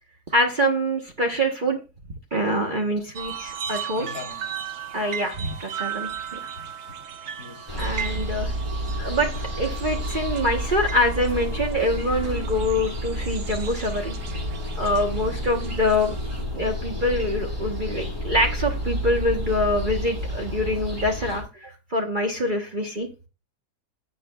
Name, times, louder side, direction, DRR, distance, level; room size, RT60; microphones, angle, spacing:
voice 1, 0.3-1.8 2.3-4.1 4.9-6.4 7.8-8.5 9.0-9.3 9.6-14.1 14.8-16.2 16.5-23.1, left 1 dB, 35° right, 1 dB, 1.1 m, -25 dB
sound 1, 3.2-16.4, right 8 dB, 60° right, 0.7 m, -37 dB
voice 2, 3.9-4.5 6.6-6.9 7.4-7.8 14.2-14.6, left 4 dB, 60° left, 3 dB, 2.1 m, -40 dB
sound 2, 7.7-21.4, equal, 15° right, 6.9 m, -30 dB
16.5 x 8.6 x 2.3 m, 0.30 s
omnidirectional pair, 1.8 m